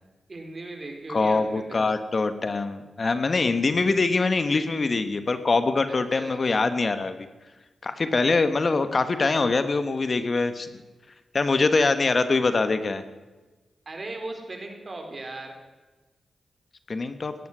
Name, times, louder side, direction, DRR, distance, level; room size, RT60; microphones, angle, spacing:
voice 1, 0.3-1.8 5.9-6.4 13.9-15.5, right 2 dB, 45° right, 3 dB, 4.3 m, -38 dB
voice 2, 1.1-7.1 7.8-10.7 11.3-13.0 16.9-17.3, left 3 dB, 50° left, 10 dB, 1.4 m, -23 dB
17.0 x 13.5 x 6.3 m, 1.2 s
supercardioid pair, 40°, 0 cm